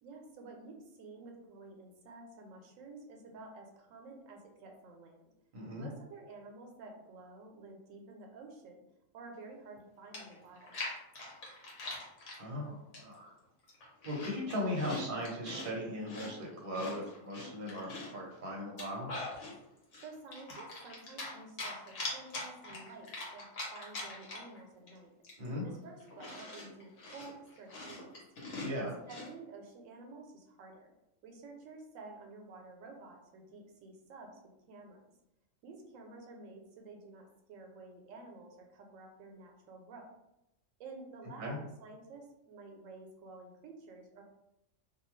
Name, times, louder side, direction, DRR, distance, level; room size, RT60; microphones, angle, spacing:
voice 1, 0.0-5.2 5.8-8.8 9.1-10.8 19.9-25.1 25.6-28.2 28.8-30.9 31.2-34.4 34.7-35.0 35.6-40.2 40.8-44.2, right 3 dB, 90° right, 2 dB, 1.0 m, -51 dB
voice 2, 5.5-5.9 12.4-13.2 14.0-19.1 25.4-25.6 28.6-28.9 41.4-41.6, equal, 45° right, -2 dB, 0.9 m, -38 dB
Chewing mastication, 9.8-9.9 10.1-12.4 12.9-13.3 13.6-15.7 16.1-18.2 18.6-19.5 19.9-21.3 21.6-24.6 24.9-25.0 25.2-29.3, left 2 dB, 70° left, 1.2 m, -43 dB
2.5 x 2.3 x 3.0 m, 0.87 s
omnidirectional pair, 1.3 m